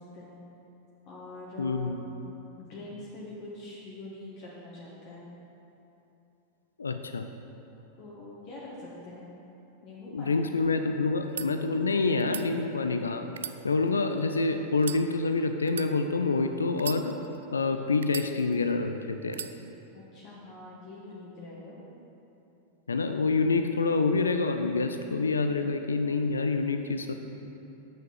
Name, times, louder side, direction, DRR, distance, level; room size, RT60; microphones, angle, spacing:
voice 1, 1.1-2.1 2.6-5.3 8.0-9.3 9.8-10.5 19.9-21.8, left 2 dB, 40° left, -5 dB, 1.5 m, -44 dB
voice 2, 1.6-2.0 6.8-7.3 10.1-13.2 13.6-17.2 17.5-19.4 22.9-27.1, left 3 dB, 75° left, 7 dB, 0.4 m, -27 dB
sound 1, 11.1-11.5 12.2-12.5 13.3-14.2 14.8-15.0 15.7-15.9 16.7-17.4 18.0-18.7 19.3-19.5, right 8 dB, 65° right, 0.3 m, -38 dB
8.9 x 6.3 x 5.7 m, 3.0 s
figure-of-eight pair, 90°, 0 cm